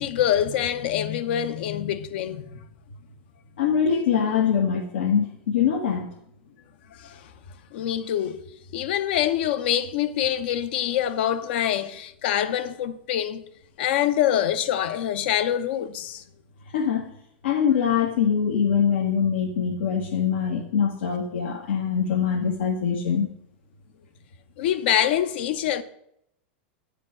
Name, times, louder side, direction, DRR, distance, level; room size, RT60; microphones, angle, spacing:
voice 1, 0.0-2.6 7.0-7.3 7.7-8.4 8.7-13.4 13.8-16.2 24.6-25.8, left 11 dB, 70° left, 0.9 m, -25 dB
voice 2, 3.6-6.1 16.7-17.1 17.4-23.3, left 7 dB, 85° left, 1.4 m, -23 dB
9.7 x 5.0 x 7.8 m
supercardioid pair, 130°, 6 cm